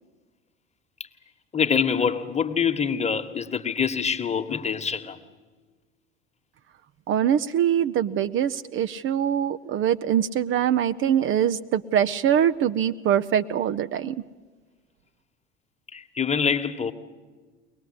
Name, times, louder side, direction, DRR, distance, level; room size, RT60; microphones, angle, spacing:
voice 1, 1.5-5.2 15.9-16.9, left 6 dB, 20° left, 1.5 m, -25 dB
voice 2, 7.1-14.2, right 9 dB, 35° right, 0.7 m, -23 dB
23.0 x 19.0 x 8.5 m
figure-of-eight pair, 65°, 33 cm